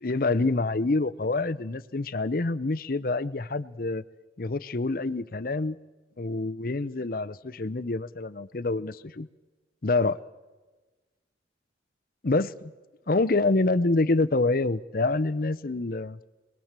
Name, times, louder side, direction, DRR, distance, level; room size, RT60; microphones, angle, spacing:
voice 1, 0.0-4.0 4.4-5.8 6.2-9.3 9.8-10.2 12.2-12.7 13.1-16.2, left 3 dB, 50° left, 14 dB, 0.7 m, -26 dB
26.0 x 20.5 x 7.5 m, 1.2 s
head